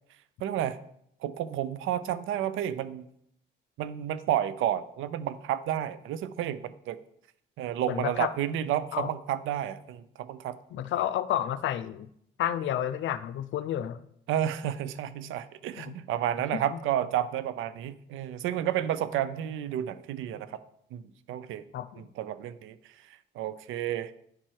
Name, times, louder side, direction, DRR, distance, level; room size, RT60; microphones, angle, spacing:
voice 1, 0.4-0.8 1.2-3.1 3.8-7.0 7.6-10.6 14.3-20.6 20.9-21.6 22.0-24.1, right 11 dB, 85° right, 15 dB, 0.6 m, -31 dB
voice 2, 7.9-8.3 8.9-9.1 10.7-12.1 12.4-14.0 15.8-15.9 16.5-16.8 21.7-22.0, left 11 dB, 75° left, 14 dB, 0.6 m, -31 dB
10.0 x 4.4 x 4.6 m, 0.71 s
cardioid pair, 90°, 20 cm